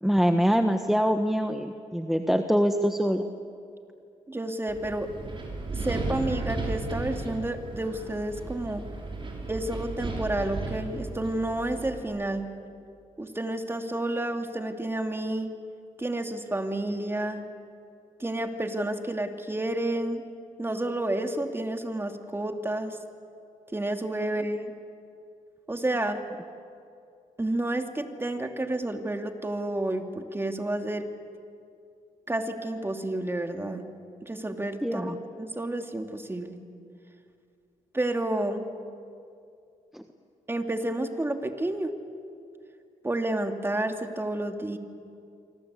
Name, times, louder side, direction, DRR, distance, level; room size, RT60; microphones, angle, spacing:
voice 1, 0.0-3.2 34.8-35.2 39.9-40.0, equal, ahead, 6 dB, 1.4 m, -24 dB
voice 2, 4.3-5.1 5.7-8.8 9.5-12.5 13.2-15.5 16.0-17.4 18.2-20.2 20.6-23.0 23.7-24.7 25.7-26.2 27.4-31.1 32.3-33.8 34.2-36.5 37.9-38.6 40.5-41.9 43.0-44.8, right 1 dB, 20° right, 4 dB, 2.7 m, -30 dB
Wind, 4.7-12.0, right 2 dB, 40° right, 6.4 m, -35 dB
27.5 x 25.0 x 8.4 m, 2.4 s
cardioid pair, 75°, 13 cm